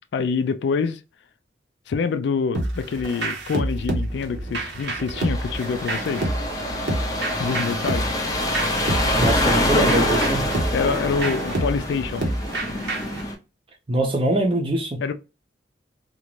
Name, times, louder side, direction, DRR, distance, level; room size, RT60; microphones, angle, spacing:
voice 1, 0.1-1.0 1.9-6.3 7.4-8.1 10.7-12.3 15.0-15.1, left 5 dB, 75° left, 0.3 m, -26 dB
sound 1, 2.5-13.2, right 1 dB, 70° right, 0.7 m, -28 dB
sound 2, 5.2-13.3, left 1 dB, 20° left, 0.5 m, -25 dB
voice 2, 9.2-10.5 13.9-15.0, right 1 dB, 30° right, 0.6 m, -23 dB
2.5 x 2.1 x 3.0 m
head